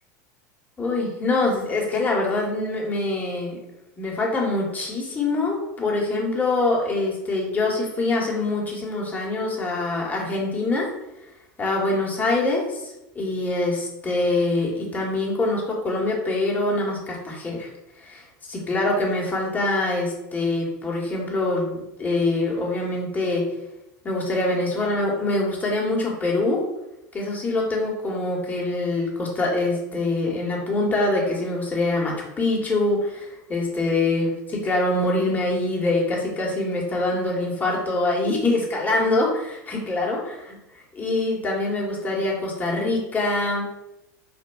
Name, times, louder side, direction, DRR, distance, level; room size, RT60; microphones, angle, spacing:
voice 1, 0.8-3.6 4.0-10.9 11.6-12.8 13.1-17.7 18.0-23.5 24.0-26.6 27.1-40.6 40.9-43.7, left 2 dB, 15° left, -3 dB, 1.0 m, -24 dB
4.2 x 2.2 x 2.3 m, 0.92 s
hypercardioid pair, 100°, 9 cm